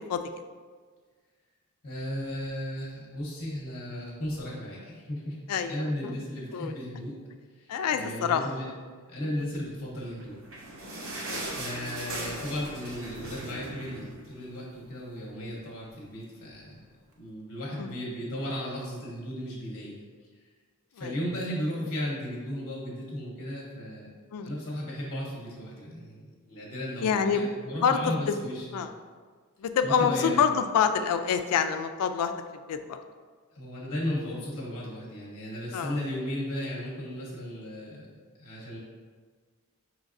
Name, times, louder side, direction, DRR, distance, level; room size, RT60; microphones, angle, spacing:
voice 1, 1.8-5.4 5.7-7.1 7.6-8.7 9.1-10.4 11.5-16.8 17.2-20.0 20.9-24.1 24.4-28.9 29.8-30.4 33.5-38.0 38.4-38.8, equal, 45° left, -4 dB, 0.8 m, -35 dB
voice 2, 5.5-6.1 6.5-6.7 7.7-8.4 11.3-11.6 17.8-17.9 21.0-21.2 24.3-24.6 27.0-27.4 27.8-28.4 28.7-28.9 29.6-32.3 32.7-33.0 35.7-36.0, left 7 dB, 90° left, 8 dB, 0.3 m, -27 dB
sound 1, 10.1-14.8 15.2-15.3 15.5-15.7 16.4-16.5, right 2 dB, 60° right, 0.7 m, -39 dB
5.2 x 3.0 x 2.5 m, 1.5 s
head